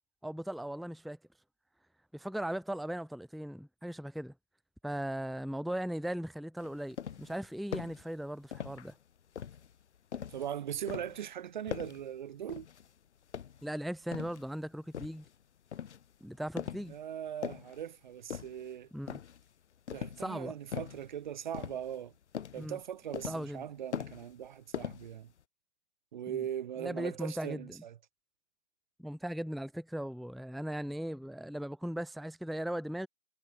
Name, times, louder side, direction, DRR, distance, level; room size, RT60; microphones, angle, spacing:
voice 1, 0.2-1.2 2.1-4.3 4.8-8.9 13.6-15.2 16.2-16.9 18.9-19.2 20.2-20.6 22.6-22.8 23.3-23.6 26.3-26.4 26.8-27.8 29.0-33.1, right 1 dB, ahead, 1.0 m, -38 dB
sound 1, 6.6-7.4 7.7-8.0 8.5-9.0 9.4-10.5 10.9-11.2 11.7-12.1 12.5-12.9 13.3-14.4 14.9-15.3 15.7-16.1 16.6-17.0 17.3-17.8 18.3-18.7 19.1-19.5 19.9-20.3 20.7-21.1 21.5-22.1 22.3-22.7 23.1-23.6 23.9-24.5 24.7-25.4, left 8 dB, 50° left, 1.6 m, -41 dB
voice 2, 10.3-12.7 16.9-18.9 19.9-22.1 22.5-25.3 26.1-28.0, right 10 dB, 35° right, 1.2 m, -40 dB
hypercardioid pair, 155°, 43 cm